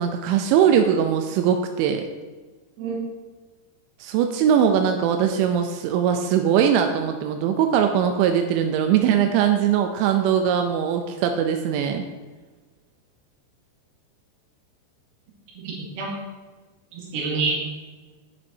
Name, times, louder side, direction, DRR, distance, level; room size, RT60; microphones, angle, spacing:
voice 1, 0.0-2.0 4.0-12.0, right 8 dB, 90° right, 5 dB, 2.9 m, -21 dB
voice 2, 15.6-16.1 16.9-17.6, right 4 dB, 65° right, -4 dB, 3.5 m, -27 dB
9.5 x 8.5 x 2.7 m, 1.3 s
omnidirectional pair, 5.2 m